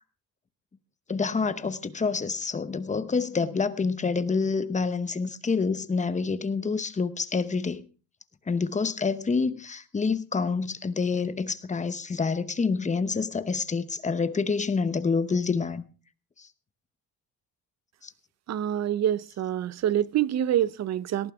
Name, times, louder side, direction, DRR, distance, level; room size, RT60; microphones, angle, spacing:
voice 1, 1.1-7.8 8.5-15.8, left 4 dB, 20° left, 0.9 m, -27 dB
voice 2, 18.5-21.3, right 11 dB, 45° right, 0.6 m, -26 dB
18.5 x 13.0 x 3.5 m
cardioid pair, 145°, 36 cm